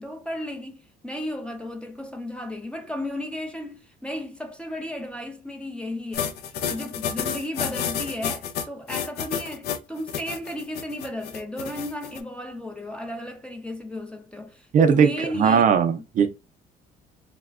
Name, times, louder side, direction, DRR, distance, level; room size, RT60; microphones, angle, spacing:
voice 1, 0.0-6.4 6.7-15.6, left 1 dB, 5° left, 0.5 m, -34 dB
sound 1, 6.1-12.2, left 8 dB, 70° left, 0.4 m, -30 dB
voice 2, 14.7-15.1 15.4-16.3, right 6 dB, 50° right, 0.4 m, -18 dB
4.1 x 2.1 x 2.3 m
cardioid pair, 110°, 17 cm